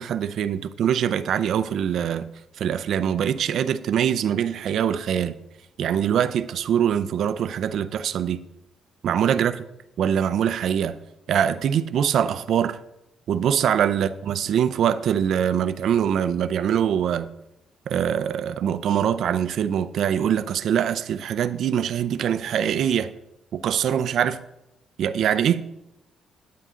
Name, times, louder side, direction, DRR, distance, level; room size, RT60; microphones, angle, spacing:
voice 1, 0.0-2.3 2.6-5.4 5.8-8.4 9.0-9.6 10.0-11.0 11.3-12.8 13.3-17.3 17.9-23.1 23.5-24.4 25.0-25.6, right 9 dB, 70° right, 0.5 m, -23 dB
9.4 x 9.1 x 3.7 m
cardioid pair, 90°, 0 cm